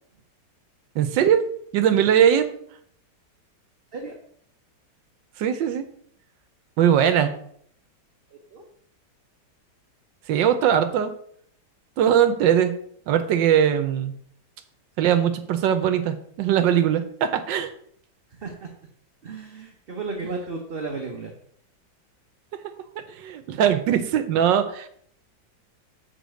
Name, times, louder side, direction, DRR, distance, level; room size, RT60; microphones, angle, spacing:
voice 1, 0.9-1.4 1.7-2.5 5.4-5.8 6.8-7.3 10.3-11.1 12.0-12.7 13.1-14.1 15.0-17.7 23.1-24.9, right 9 dB, 90° right, 10 dB, 1.5 m, -20 dB
voice 2, 18.3-18.7 19.2-21.3, right 3 dB, 45° right, 1 dB, 0.8 m, -33 dB
6.9 x 4.2 x 6.3 m, 0.64 s
omnidirectional pair, 1.9 m